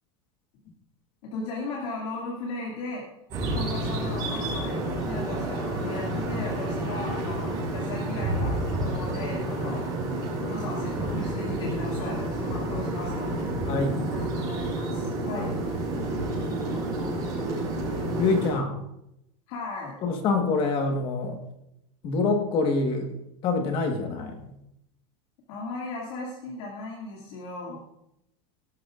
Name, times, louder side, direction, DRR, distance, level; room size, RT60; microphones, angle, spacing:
voice 1, 1.2-3.1 3.4-9.9 10.4-13.5 14.1-15.5 19.5-20.0 25.5-27.8, left 3 dB, 45° left, -3 dB, 2.3 m, -37 dB
sound 1, 3.3-18.5, right 1 dB, 20° right, 5.2 m, -29 dB
voice 2, 13.7-14.0 15.4-15.5 18.2-18.8 20.0-21.4 22.0-23.2 23.4-24.5, left 3 dB, 30° left, 5 dB, 1.4 m, -26 dB
18.0 x 12.5 x 2.5 m, 0.83 s
supercardioid pair, 180°, 18 cm